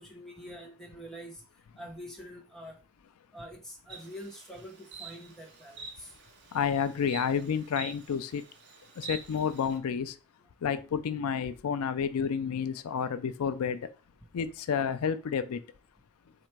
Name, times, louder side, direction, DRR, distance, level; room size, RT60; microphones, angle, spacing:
voice 1, 0.0-1.4 1.8-2.8 3.3-6.1, equal, ahead, 0 dB, 0.8 m, -45 dB
Insect, 3.9-9.8, right 5 dB, 50° right, 0.8 m, -47 dB
voice 2, 6.5-8.4 9.0-10.1 10.6-13.8 14.3-15.6, left 7 dB, 85° left, 12 dB, 0.4 m, -30 dB
4.4 x 2.5 x 4.5 m, 0.33 s
head